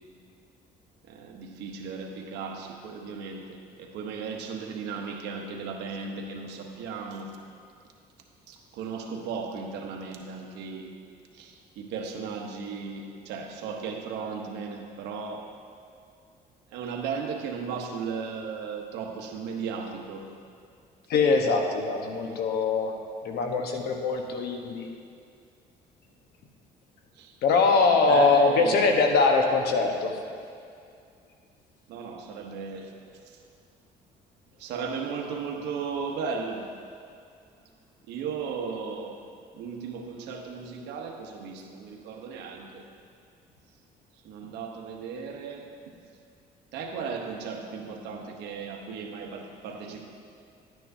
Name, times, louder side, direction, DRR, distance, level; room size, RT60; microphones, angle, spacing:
voice 1, 1.1-7.4 8.5-10.9 11.3-15.5 16.7-20.3 22.2-22.3 27.2-27.3 27.9-28.8 31.9-32.9 34.6-36.7 38.1-39.2 39.5-42.8 44.2-45.7 46.7-50.1, right 5 dB, 85° right, 2 dB, 1.0 m, -36 dB
voice 2, 21.1-22.9 23.2-24.9 27.4-30.1, left 4 dB, 70° left, 3 dB, 1.1 m, -22 dB
11.5 x 9.2 x 2.7 m, 2.4 s
cardioid pair, 110°, 17 cm